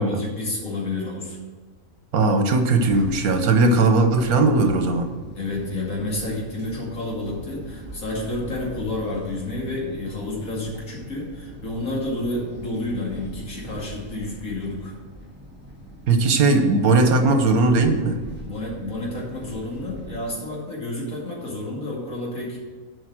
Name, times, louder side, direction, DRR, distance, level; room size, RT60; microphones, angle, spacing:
voice 1, 0.0-1.4 5.3-14.9 18.5-22.6, left 2 dB, 70° left, -3 dB, 2.8 m, -30 dB
voice 2, 2.1-5.1 16.1-18.2, right 3 dB, 80° right, 6 dB, 1.5 m, -18 dB
sound 1, 2.8-20.2, right 1 dB, 10° right, 1.3 m, -41 dB
8.1 x 5.5 x 7.6 m, 1.4 s
omnidirectional pair, 1.5 m